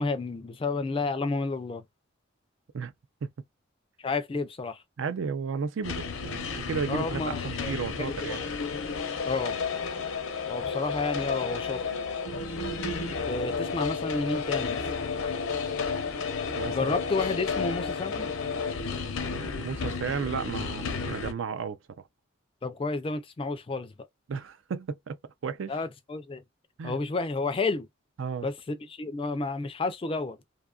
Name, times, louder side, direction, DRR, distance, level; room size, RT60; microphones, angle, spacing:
voice 1, 0.0-1.8 4.0-4.8 6.9-8.4 9.3-9.5 10.5-11.8 13.3-14.8 16.7-18.3 22.6-23.9 25.7-26.4 26.8-27.9 28.4-30.4, left 3 dB, 25° left, 0.3 m, -31 dB
voice 2, 5.0-8.5 16.6-17.0 19.5-22.0 24.3-25.2 25.4-25.8 26.8-27.0 28.2-28.5, right 5 dB, 70° right, 0.4 m, -33 dB
sound 1, 5.8-21.3, left 5 dB, 80° left, 0.6 m, -32 dB
2.7 x 2.3 x 2.3 m
head